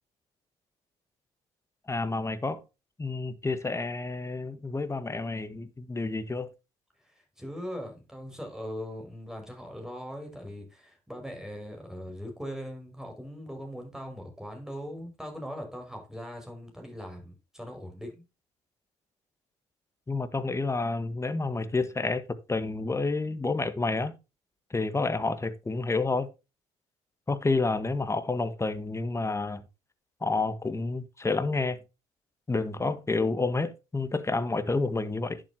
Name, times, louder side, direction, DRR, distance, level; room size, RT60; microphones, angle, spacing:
voice 1, 1.9-2.6 3.0-6.5 20.1-24.1 24.7-26.3 27.3-29.6 30.2-31.8 32.5-35.4, left 3 dB, 20° left, 1.4 m, -29 dB
voice 2, 7.4-18.2, equal, 5° right, 6.0 m, -40 dB
11.0 x 7.7 x 2.9 m
supercardioid pair, 70°, 14 cm